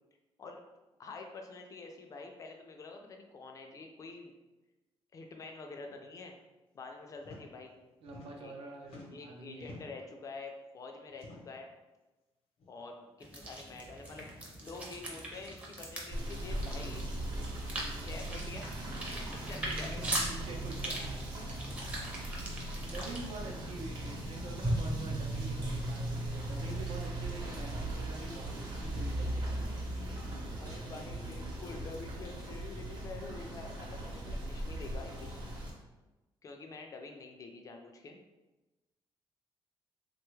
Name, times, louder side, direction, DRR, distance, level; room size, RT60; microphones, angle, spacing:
voice 1, 1.0-4.3 5.1-6.4 6.7-7.7 8.4-8.5 9.1-11.7 12.7-14.3 14.6-17.1 18.0-18.8 19.1-20.1 30.6-35.4 36.4-38.2, left 3 dB, 35° left, 3 dB, 0.3 m, -47 dB
sound 1, 7.2-7.4 7.7-8.6 8.8-10.1 11.1-11.7 12.6-12.8 13.1-13.2 14.1-14.4 15.5-15.6 16.8-17.1 18.1-18.4, left 2 dB, 75° left, 0.7 m, -53 dB
voice 2, 8.0-9.7 19.8-21.6 21.9-22.4 22.8-30.1, right 2 dB, 80° right, 0 dB, 0.6 m, -46 dB
sound 2, 13.2-23.2, right 1 dB, 15° right, 0.5 m, -41 dB
Rain / Motor vehicle (road), 16.1-35.7, right 1 dB, 45° right, 0.8 m, -38 dB
3.3 x 2.3 x 3.1 m, 1.1 s
cardioid pair, 165°, 10 cm